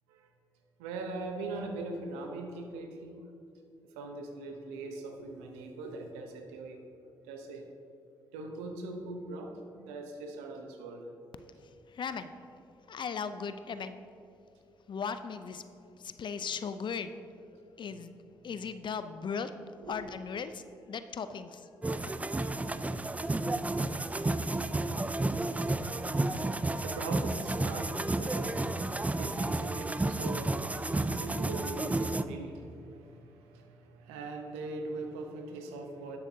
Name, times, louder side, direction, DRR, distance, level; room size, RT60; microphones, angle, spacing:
voice 1, 0.8-3.2 3.9-6.8 7.3-7.6 8.3-11.1 19.8-19.9 26.8-36.2, right 2 dB, 85° right, 4 dB, 0.8 m, -41 dB
voice 2, 11.6-12.3 12.9-14.0 14.9-17.1 17.8-18.1 18.4-19.5 19.9-21.7 22.0-22.1, left 6 dB, 50° left, 11 dB, 0.5 m, -38 dB
sound 1, 21.8-32.2, right 2 dB, 15° right, 0.4 m, -31 dB
11.5 x 7.4 x 2.7 m, 2.6 s
hypercardioid pair, 50°, 10 cm